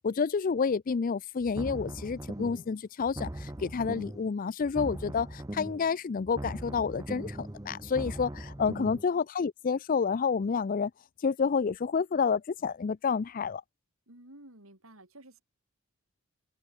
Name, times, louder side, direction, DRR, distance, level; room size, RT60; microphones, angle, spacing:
voice 1, 0.0-10.9 11.2-13.6, left 5 dB, 40° left, 0.4 m, -29 dB
sound 1, 1.4-2.7 3.0-4.3 4.6-5.9 6.2-9.0, right 1 dB, 15° right, 0.9 m, -40 dB
voice 2, 8.7-9.0 14.1-15.4, right 1 dB, 70° right, 6.0 m, -52 dB
head